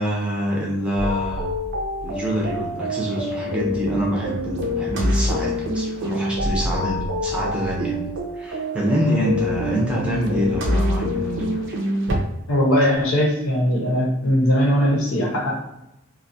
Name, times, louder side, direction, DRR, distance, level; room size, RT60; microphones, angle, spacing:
voice 1, 0.0-1.5 2.0-8.0 8.4-11.8, equal, 5° right, -5 dB, 0.5 m, -25 dB
sound 1, 1.0-12.2, equal, 55° right, 0.5 m, -26 dB
voice 2, 12.5-15.6, equal, 80° left, -2 dB, 0.8 m, -19 dB
2.5 x 2.3 x 2.6 m, 0.87 s
head